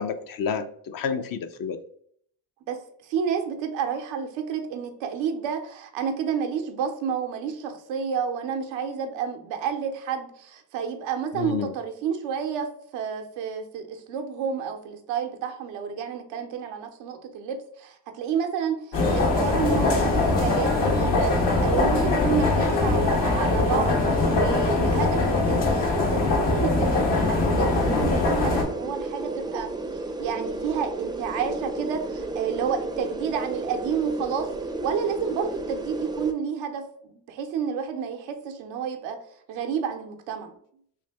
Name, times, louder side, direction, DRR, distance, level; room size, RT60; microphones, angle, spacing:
voice 1, 0.0-1.8 11.3-11.7, left 6 dB, 50° left, 9 dB, 0.5 m, -30 dB
voice 2, 2.7-24.0 24.3-29.7 30.2-34.5 34.8-39.2 39.5-40.6, right 7 dB, 85° right, 5 dB, 0.6 m, -30 dB
sound 1, 18.9-28.6, left 2 dB, 70° left, 1.1 m, -22 dB
sound 2, 27.6-36.3, right 2 dB, 10° right, 0.4 m, -33 dB
3.2 x 2.7 x 3.3 m, 0.64 s
supercardioid pair, 50°, 44 cm